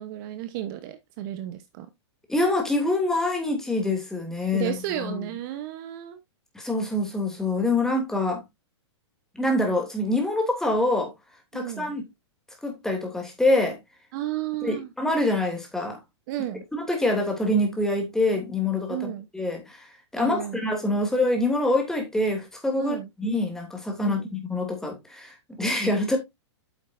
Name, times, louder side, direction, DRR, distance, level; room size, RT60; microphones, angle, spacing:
voice 1, 0.0-1.9 4.5-6.2 11.5-11.9 14.1-14.9 16.3-16.6 18.9-19.3 20.2-20.6 22.8-23.1 24.0-24.2, right 13 dB, 45° right, 1.0 m, -33 dB
voice 2, 2.3-4.7 5.0-5.3 6.5-8.4 9.3-11.1 11.5-12.0 12.6-13.8 14.6-16.0 16.7-26.2, left 2 dB, 5° left, 2.8 m, -25 dB
9.0 x 7.2 x 2.6 m
hypercardioid pair, 140°, 15 cm